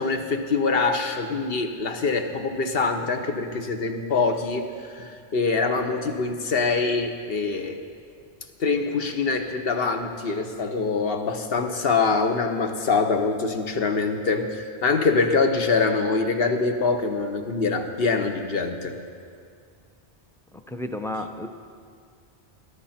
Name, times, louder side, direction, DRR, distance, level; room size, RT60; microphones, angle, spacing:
voice 1, 0.0-7.8 8.6-19.0, left 4 dB, 60° left, 6 dB, 1.2 m, -24 dB
voice 2, 20.5-21.5, left 1 dB, 5° left, 6 dB, 0.4 m, -32 dB
19.5 x 11.0 x 4.3 m, 2.2 s
omnidirectional pair, 1.1 m